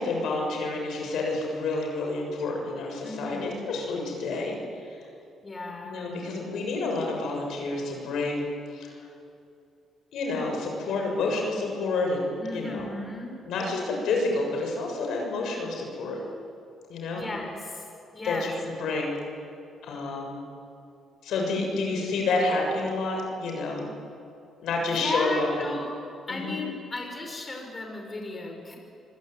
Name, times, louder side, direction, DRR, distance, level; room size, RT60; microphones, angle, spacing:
voice 1, 0.0-4.6 5.8-8.5 8.7-8.9 10.1-12.9 13.5-16.2 16.9-17.2 18.2-19.2 19.8-20.4 21.2-23.9 24.6-25.7 26.3-26.6, left 3 dB, 80° left, 1 dB, 7.1 m, -29 dB
voice 2, 3.0-3.7 5.4-6.2 12.4-13.4 17.1-17.9 18.1-18.5 24.9-25.9 26.3-28.8, left 2 dB, 25° left, 2 dB, 5.5 m, -35 dB
26.5 x 21.0 x 9.3 m, 2.6 s
cardioid pair, 90°, 0 cm